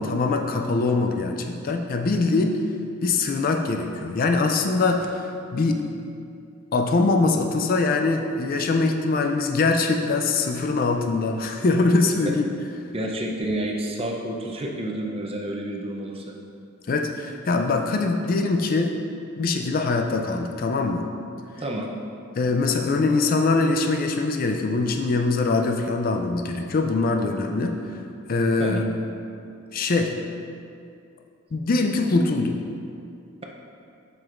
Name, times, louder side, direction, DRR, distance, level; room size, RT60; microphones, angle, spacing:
voice 1, 0.0-2.6 3.0-5.8 6.7-12.5 16.9-19.0 19.4-21.1 22.4-28.0 28.3-28.9 29.7-30.1 31.5-32.6, left 3 dB, 40° left, 4 dB, 0.4 m, -23 dB
voice 2, 12.9-16.4 21.6-21.9 28.6-28.8, right 1 dB, 25° right, 0 dB, 0.6 m, -29 dB
7.6 x 6.0 x 2.5 m, 2.5 s
head